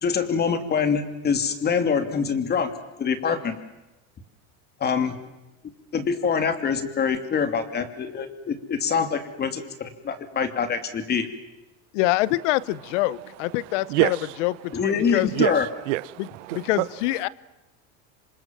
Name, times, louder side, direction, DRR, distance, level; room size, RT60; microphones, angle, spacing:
voice 1, 0.0-2.7 3.0-3.6 4.8-5.2 5.9-11.3 14.7-15.6, left 6 dB, 25° left, 2.8 m, -25 dB
voice 2, 11.9-15.3 16.5-17.3, left 17 dB, 80° left, 1.0 m, -25 dB
voice 3, 13.9-14.4 15.3-16.9, right 20 dB, 85° right, 1.0 m, -26 dB
27.5 x 26.0 x 7.6 m
supercardioid pair, 145°, 36 cm